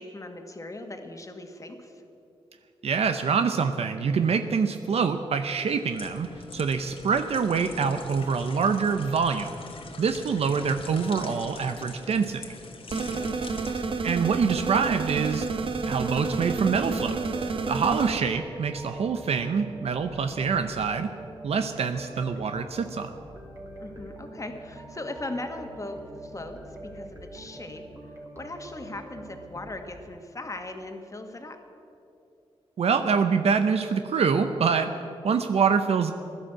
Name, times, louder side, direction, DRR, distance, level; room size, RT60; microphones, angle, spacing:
voice 1, 0.0-1.9 13.2-13.5 23.8-27.8 28.3-31.6, left 2 dB, 30° left, 5 dB, 1.8 m, -39 dB
voice 2, 2.8-6.3 6.5-9.5 10.0-12.5 14.0-15.5 15.9-17.2 17.7-21.1 21.4-23.1 32.8-36.1, right 5 dB, 75° right, 8 dB, 0.7 m, -25 dB
sound 1, 5.6-15.6 16.0-16.2, left 3 dB, 60° left, 1.6 m, -43 dB
sound 2, 12.9-18.2, right 4 dB, 55° right, 1.1 m, -30 dB
sound 3, 17.0-29.8, right 1 dB, 25° right, 2.7 m, -44 dB
16.0 x 11.5 x 7.7 m, 2.8 s
cardioid pair, 85°, 11 cm